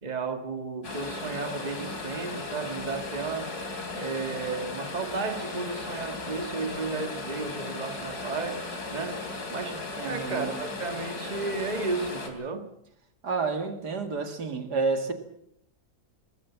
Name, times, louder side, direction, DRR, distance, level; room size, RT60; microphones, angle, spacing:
voice 1, 0.0-3.5 3.9-9.2 9.5-12.7, right 4 dB, 25° right, 1.8 m, -33 dB
sound 1, 0.8-12.3, left 3 dB, 70° left, 3.8 m, -36 dB
voice 2, 10.0-10.5 13.2-15.1, right 4 dB, 80° right, 2.8 m, -29 dB
22.5 x 19.5 x 7.3 m
omnidirectional pair, 1.7 m